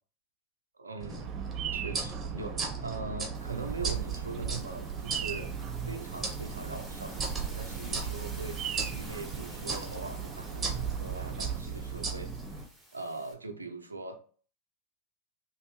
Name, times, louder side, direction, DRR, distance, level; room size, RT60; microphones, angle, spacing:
voice 1, 0.7-1.4 1.7-5.6 5.8-8.6 8.9-12.3 12.9-14.2, right 3 dB, 90° right, 0.5 m, -41 dB
sound 1, 1.0-12.6, right 4 dB, 25° right, 1.0 m, -37 dB
Bird vocalization bird call bird song, 1.1-11.6, right 8 dB, 40° right, 0.4 m, -39 dB
sound 2, 3.3-13.3, equal, ahead, 1.4 m, -51 dB
3.5 x 2.6 x 3.0 m
figure-of-eight pair, 90°, 0 cm